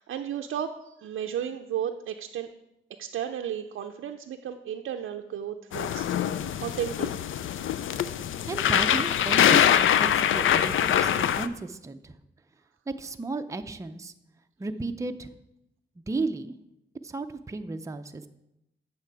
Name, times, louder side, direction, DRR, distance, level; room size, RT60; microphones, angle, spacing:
voice 1, 0.0-2.5 3.0-7.1, right 9 dB, 80° right, 4 dB, 0.5 m, -34 dB
sound 1, 5.7-11.5, left 9 dB, 75° left, 0.4 m, -23 dB
voice 2, 8.5-12.2 12.9-14.1 14.6-15.3 16.1-16.5 17.0-18.3, right 3 dB, 15° right, 7 dB, 0.5 m, -34 dB
8.5 x 6.6 x 4.7 m, 0.86 s
cardioid pair, 75°, 20 cm